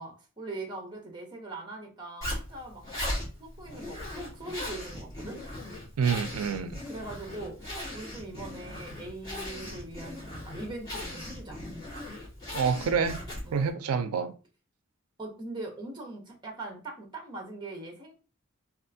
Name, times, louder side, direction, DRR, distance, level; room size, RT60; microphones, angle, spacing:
voice 1, 0.0-5.4 6.8-11.6 13.4-13.6 15.2-18.1, right 2 dB, 20° right, 0.8 m, -41 dB
Zipper (clothing), 2.2-13.7, left 1 dB, 15° left, 1.7 m, -38 dB
voice 2, 6.0-6.8 12.5-13.2 13.5-14.3, right 6 dB, 85° right, 0.4 m, -27 dB
3.4 x 2.4 x 2.6 m
head